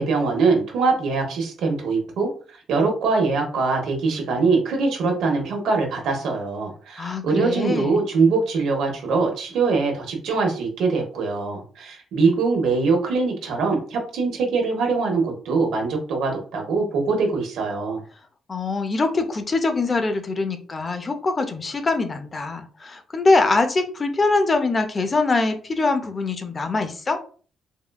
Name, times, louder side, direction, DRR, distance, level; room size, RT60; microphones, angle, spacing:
voice 1, 0.0-2.3 2.7-18.0, right 4 dB, 80° right, 2 dB, 0.9 m, -22 dB
voice 2, 7.0-8.1 18.5-27.2, left 3 dB, 35° left, 7 dB, 0.5 m, -23 dB
3.5 x 2.3 x 2.2 m, 0.40 s
cardioid pair, 90°, 0 cm